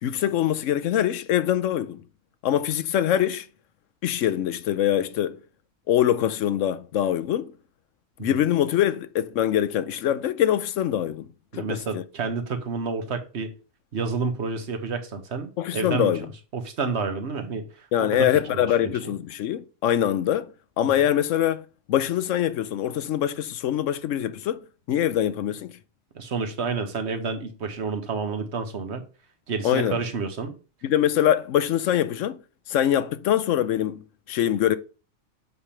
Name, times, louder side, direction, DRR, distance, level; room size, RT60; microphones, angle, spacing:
voice 1, 0.0-2.0 2.4-3.5 4.0-5.4 5.9-7.5 8.2-11.3 11.5-12.0 15.6-16.3 17.9-20.5 20.8-24.6 24.9-25.8 29.6-30.0 30.8-32.4 32.7-34.8, left 11 dB, 85° left, 1.0 m, -24 dB
voice 2, 11.5-13.5 13.9-16.1 16.5-19.1 26.1-29.0 29.5-30.5, right 4 dB, 65° right, 1.3 m, -30 dB
7.9 x 3.4 x 5.6 m
omnidirectional pair, 1.3 m